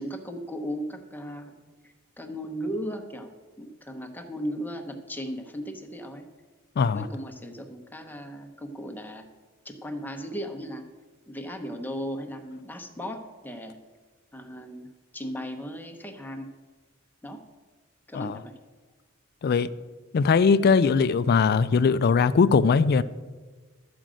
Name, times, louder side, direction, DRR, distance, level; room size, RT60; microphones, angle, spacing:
voice 1, 0.0-1.5 1.8-3.3 3.6-6.2 6.9-9.2 9.6-10.8 11.3-13.8 14.3-14.9 15.1-16.5 17.2-17.4 18.1-18.5, equal, 10° left, 4 dB, 1.0 m, -36 dB
voice 2, 20.1-23.0, left 5 dB, 50° left, 14 dB, 0.4 m, -20 dB
12.5 x 5.1 x 7.5 m, 1.3 s
head